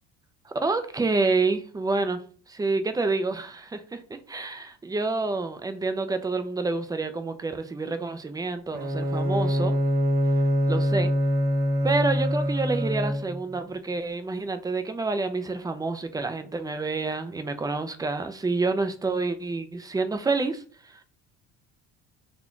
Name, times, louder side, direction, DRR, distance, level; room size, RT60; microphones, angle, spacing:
voice 1, 0.5-2.2 2.5-9.8 10.7-11.1 11.8-21.0, right 3 dB, 10° right, 8 dB, 0.6 m, -28 dB
Bowed string instrument, 8.7-13.5, equal, 30° right, 0.9 m, -24 dB
4.2 x 2.8 x 4.5 m, 0.43 s
cardioid pair, 120°, 31 cm